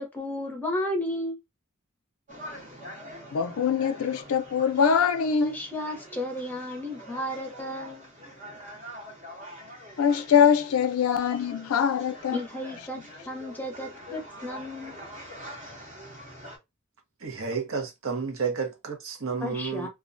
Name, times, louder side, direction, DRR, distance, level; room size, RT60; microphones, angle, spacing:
voice 1, 0.0-1.4 5.4-8.1 12.3-15.0 19.4-19.9, left 1 dB, 10° left, 0.6 m, -33 dB
sound 1, 2.3-16.6, equal, 35° right, 0.8 m, -45 dB
voice 2, 3.3-5.6 10.0-12.4, left 7 dB, 85° left, 0.4 m, -23 dB
voice 3, 17.2-19.9, right 5 dB, 70° right, 0.7 m, -31 dB
2.3 x 2.1 x 2.5 m
head